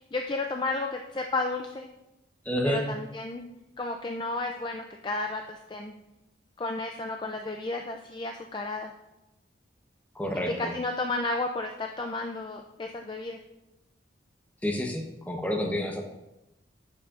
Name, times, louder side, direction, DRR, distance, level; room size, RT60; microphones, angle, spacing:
voice 1, 0.1-1.9 2.6-3.5 3.8-5.9 6.6-8.9 10.5-13.4, left 2 dB, 25° left, 3 dB, 0.4 m, -32 dB
voice 2, 2.5-2.8 10.2-10.7 14.6-16.0, equal, 10° left, 1 dB, 0.9 m, -29 dB
10.5 x 7.2 x 2.5 m, 0.94 s
head